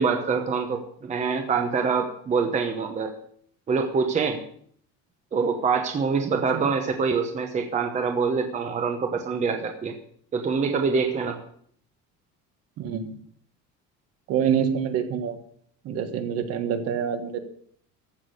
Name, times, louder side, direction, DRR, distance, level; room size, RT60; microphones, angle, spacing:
voice 1, 0.0-3.1 3.7-4.4 5.3-9.9 10.3-11.4, right 5 dB, 20° right, 5 dB, 1.0 m, -25 dB
voice 2, 6.3-6.6 12.8-13.1 14.3-15.4 15.8-17.4, right 8 dB, 50° right, 8 dB, 1.5 m, -26 dB
14.5 x 6.0 x 8.1 m, 0.62 s
cardioid pair, 175°, 32 cm